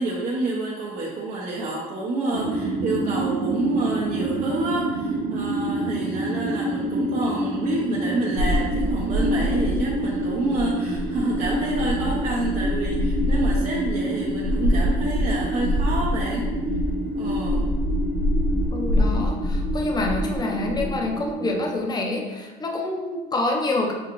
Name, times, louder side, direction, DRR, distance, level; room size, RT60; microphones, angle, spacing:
voice 1, 0.0-16.5 17.2-17.7, right 2 dB, 50° right, -5 dB, 0.8 m, -28 dB
sound 1, 2.3-21.8, right 1 dB, 85° right, 0.5 m, -28 dB
sound 2, 8.4-21.3, left 1 dB, 90° left, 0.9 m, -26 dB
voice 2, 18.7-23.9, left 2 dB, 25° left, 2 dB, 0.6 m, -27 dB
6.1 x 2.4 x 3.0 m, 1.2 s
cardioid pair, 110°, 17 cm